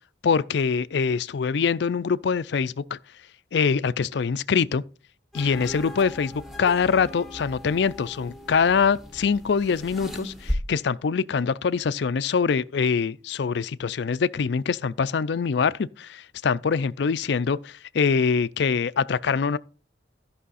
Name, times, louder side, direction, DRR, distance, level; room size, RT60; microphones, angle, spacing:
voice 1, 0.2-3.0 3.5-4.8 5.3-19.6, left 5 dB, 65° left, 0.4 m, -24 dB
sound 1, 5.3-10.5, left 1 dB, ahead, 1.2 m, -37 dB
12.5 x 5.6 x 4.1 m
head